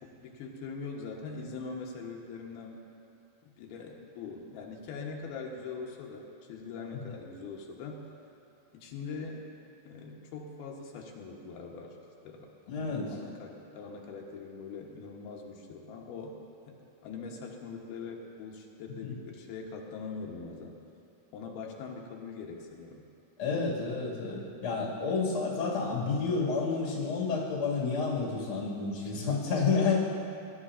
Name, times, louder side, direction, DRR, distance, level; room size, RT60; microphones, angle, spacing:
voice 1, 0.0-2.8 3.6-8.0 8.8-9.5 9.9-12.0 12.2-12.5 13.1-16.4 16.7-20.8 21.3-23.0 29.0-29.7, left 4 dB, 85° left, 0 dB, 3.0 m, -42 dB
voice 2, 12.7-13.1 19.0-19.1 23.4-29.9, left 4 dB, 40° left, -5 dB, 2.4 m, -30 dB
19.0 x 11.5 x 2.5 m, 2.9 s
omnidirectional pair, 4.3 m